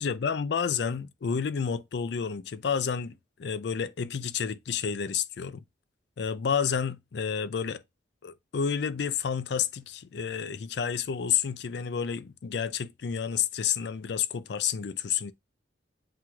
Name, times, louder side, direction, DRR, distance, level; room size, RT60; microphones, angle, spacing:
voice 1, 0.0-5.6 6.2-7.8 8.2-15.3, left 7 dB, 65° left, 0.4 m, -30 dB
7.8 x 3.0 x 2.3 m
head